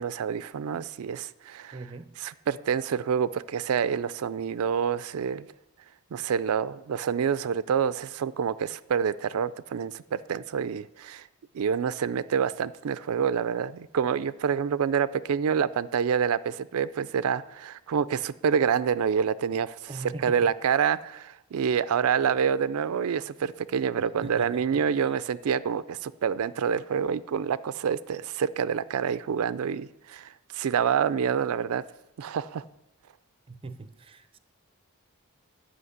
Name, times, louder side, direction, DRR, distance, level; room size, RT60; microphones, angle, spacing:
voice 1, 0.0-1.8 2.2-5.5 6.1-11.3 11.5-19.8 20.0-31.8 32.2-32.6, right 7 dB, 80° right, 0.4 m, -27 dB
voice 2, 1.7-2.2 19.9-20.5 24.0-25.2 33.5-34.4, right 3 dB, 25° right, 0.5 m, -41 dB
11.0 x 5.7 x 7.9 m
head